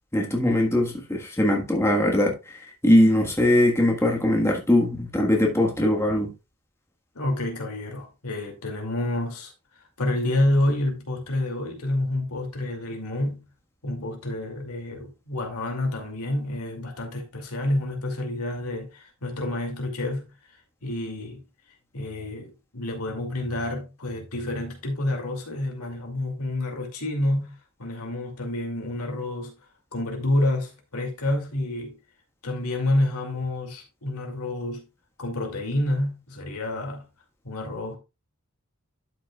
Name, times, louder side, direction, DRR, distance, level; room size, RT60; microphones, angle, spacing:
voice 1, 0.1-6.3, left 1 dB, 10° left, 1.5 m, -21 dB
voice 2, 7.1-9.5 10.0-13.5 13.8-20.3 20.8-21.4 21.9-27.5 27.8-29.5 29.9-32.0 32.4-34.9 35.2-37.1 37.4-38.0, left 1 dB, 75° left, 2.5 m, -28 dB
12.0 x 6.1 x 2.4 m
head